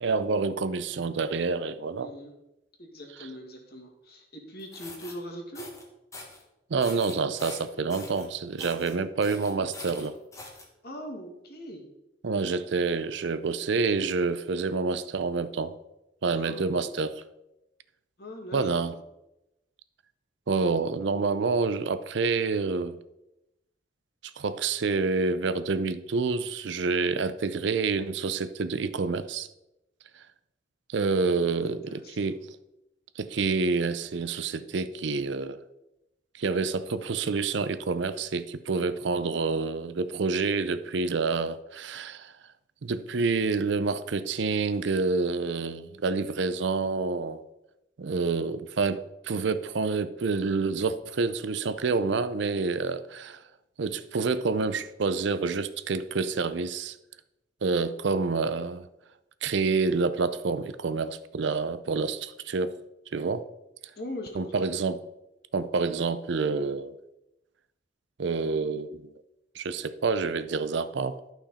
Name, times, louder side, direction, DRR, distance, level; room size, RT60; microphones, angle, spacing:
voice 1, 0.0-2.1 3.2-3.3 6.7-10.1 12.2-15.7 16.2-17.1 18.5-18.9 20.5-23.0 24.4-29.5 30.9-32.4 33.2-35.6 36.4-42.3 42.8-47.4 48.0-53.4 53.8-57.0 57.6-58.9 59.4-62.7 63.1-63.4 64.3-65.0 65.5-66.9 68.2-69.1 69.5-71.2, right 4 dB, 70° right, 13 dB, 0.5 m, -28 dB
voice 2, 2.0-2.3 2.8-5.6 10.8-11.8 16.3-17.0 18.2-19.0 31.6-32.3 64.0-64.6, equal, 50° left, 1 dB, 1.9 m, -41 dB
sound 1, 4.6-5.1 5.5-5.8 6.1-6.4 6.8-8.3 8.6-8.9 9.2-10.6, left 2 dB, 15° left, 1.3 m, -43 dB
12.0 x 5.8 x 4.2 m, 0.90 s
head